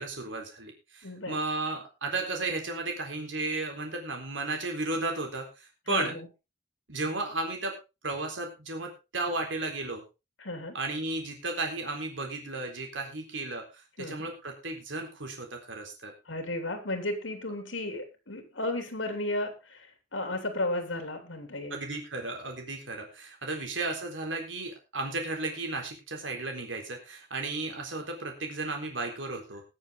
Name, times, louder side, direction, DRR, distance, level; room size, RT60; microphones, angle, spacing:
voice 1, 0.0-6.1 6.9-7.7 8.0-10.0 10.7-16.1 21.7-29.6, right 2 dB, 80° right, 3 dB, 3.9 m, -34 dB
voice 2, 1.0-1.4 5.9-6.3 10.4-10.7 14.0-14.3 16.3-21.8, left 1 dB, 85° left, 6 dB, 3.2 m, -34 dB
21.0 x 7.2 x 3.8 m, 0.28 s
head